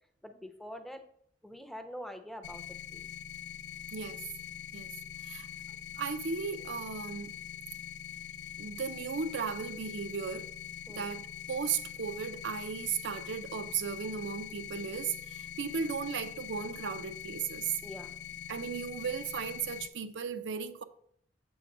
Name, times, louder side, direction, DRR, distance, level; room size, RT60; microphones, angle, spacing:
voice 1, 0.2-1.0 1.4-2.6 2.9-3.1 10.9-11.1 17.8-18.2, equal, ahead, 0.5 m, -45 dB
sound 1, 2.4-19.9, left 9 dB, 60° left, 0.3 m, -44 dB
voice 2, 3.9-4.2 4.7-4.9 5.2-5.5 6.0-7.4 8.6-10.5 10.9-17.7 18.5-20.8, right 6 dB, 80° right, 0.5 m, -36 dB
7.1 x 3.5 x 5.9 m
head